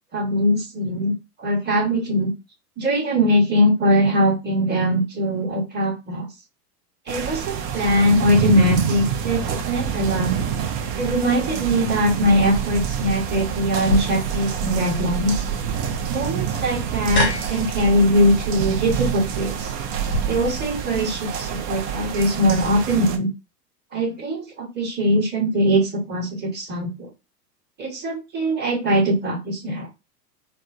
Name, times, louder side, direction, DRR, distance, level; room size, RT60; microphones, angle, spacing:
voice 1, 0.1-2.3 2.8-6.3 7.1-10.3 11.0-15.3 16.1-19.7 20.3-23.3 23.9-27.1 27.8-29.9, equal, 20° right, 0 dB, 1.3 m, -21 dB
sound 1, 7.1-23.2, right 8 dB, 45° right, 0.8 m, -27 dB
sound 2, 13.9-20.2, equal, 25° left, 0.7 m, -29 dB
4.2 x 2.0 x 2.5 m, 0.25 s
hypercardioid pair, 105°, 48 cm